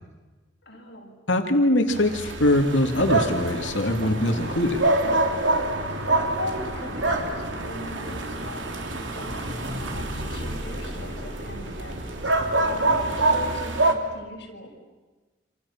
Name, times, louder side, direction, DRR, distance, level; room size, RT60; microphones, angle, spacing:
voice 1, 0.6-1.1 5.9-14.7, left 1 dB, 60° left, -1 dB, 7.1 m, -40 dB
voice 2, 1.3-5.0, left 1 dB, 90° left, 5 dB, 2.4 m, -22 dB
sound 1, 1.9-13.9, right 2 dB, 85° right, 3.0 m, -26 dB
sound 2, 3.3-13.6, right 1 dB, 35° right, 3.1 m, -41 dB
28.5 x 27.0 x 7.3 m, 1.3 s
head